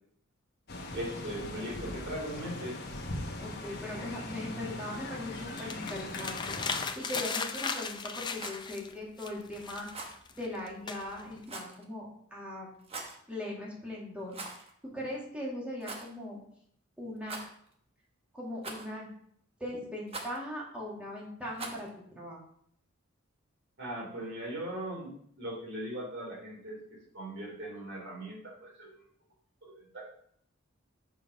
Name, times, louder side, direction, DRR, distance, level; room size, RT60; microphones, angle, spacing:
sound 1, 0.7-6.9, left 2 dB, 50° left, 1.1 m, -40 dB
voice 1, 0.9-2.8 23.8-29.1 29.6-30.1, right 1 dB, 55° right, -2 dB, 2.8 m, -39 dB
voice 2, 3.4-9.9 10.4-12.7 13.3-14.6 14.9-16.4 17.0-17.4 18.3-19.1 19.6-22.4, left 1 dB, 5° right, -5 dB, 2.1 m, -40 dB
sound 2, 5.3-8.9 9.2-11.4, left 5 dB, 20° left, 0.4 m, -37 dB
Rattle, 6.5-6.9 8.3-8.6 9.9-10.2 11.4-11.8 12.8-13.2 14.3-14.7 15.0-15.1 15.8-16.1 17.2-17.7 18.6-19.0 20.1-20.4 21.5-21.9, right 3 dB, 30° right, 1.0 m, -42 dB
6.9 x 4.5 x 5.2 m, 0.66 s
head